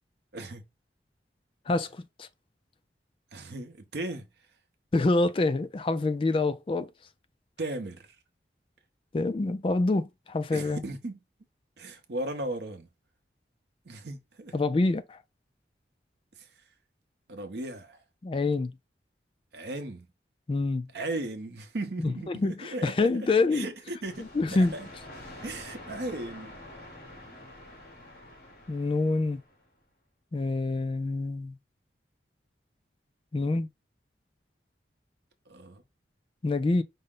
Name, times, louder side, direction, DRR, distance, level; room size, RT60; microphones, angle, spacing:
voice 1, 0.3-0.7 3.3-4.3 7.6-8.1 10.5-11.2 11.8-12.9 13.9-14.6 16.4-16.5 17.3-18.0 19.5-20.1 20.9-24.9 25.4-26.6 35.5-35.8, right 2 dB, 65° right, 0.7 m, -36 dB
voice 2, 1.7-2.3 4.9-6.9 9.1-10.8 14.5-15.2 18.2-18.7 20.5-20.9 22.0-23.7 24.2-24.7 28.7-29.4 30.3-31.6 33.3-33.7 36.4-36.8, left 3 dB, 30° left, 0.3 m, -26 dB
sound 1, 24.1-29.6, left 1 dB, 55° left, 1.7 m, -47 dB
5.3 x 2.0 x 3.6 m
head